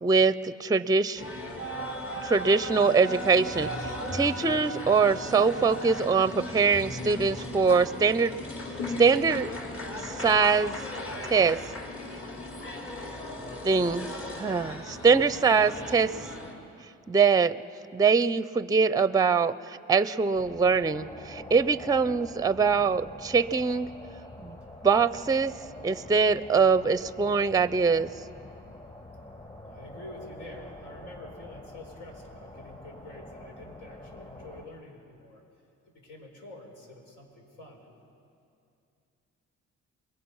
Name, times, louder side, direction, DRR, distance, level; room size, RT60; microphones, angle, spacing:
voice 1, 0.0-1.3 2.2-8.3 9.0-9.5 10.0-10.7 11.3-11.6 13.6-14.1 14.4-16.1 17.1-17.6 17.9-23.9 24.4-24.6 24.8-25.5 25.8-28.1, right 5 dB, 15° right, 15 dB, 0.5 m, -23 dB
sound 1, 1.1-16.5, left 1 dB, 45° left, 3.8 m, -37 dB
sound 2, 20.3-34.6, left 1 dB, 25° left, 4.0 m, -45 dB
voice 2, 29.6-35.4 35.9-37.9, left 2 dB, 90° left, 1 dB, 4.7 m, -47 dB
28.0 x 22.0 x 5.6 m, 2.5 s
cardioid pair, 90°, 30 cm